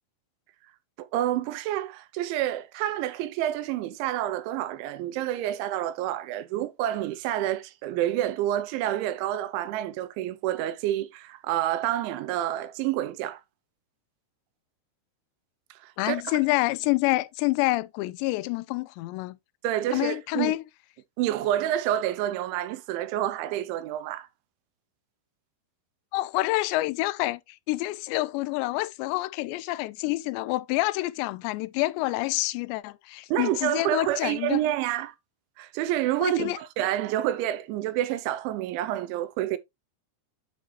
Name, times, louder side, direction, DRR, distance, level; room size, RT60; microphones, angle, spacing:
voice 1, 1.0-13.4 15.8-16.2 19.6-20.5 21.2-24.3 33.3-35.2 35.6-39.6, right 13 dB, 85° right, 3.1 m, -28 dB
voice 2, 16.0-19.4 19.9-20.6 26.1-34.6 36.2-36.6, left 19 dB, 80° left, 2.7 m, -27 dB
9.1 x 5.0 x 3.2 m
omnidirectional pair, 5.3 m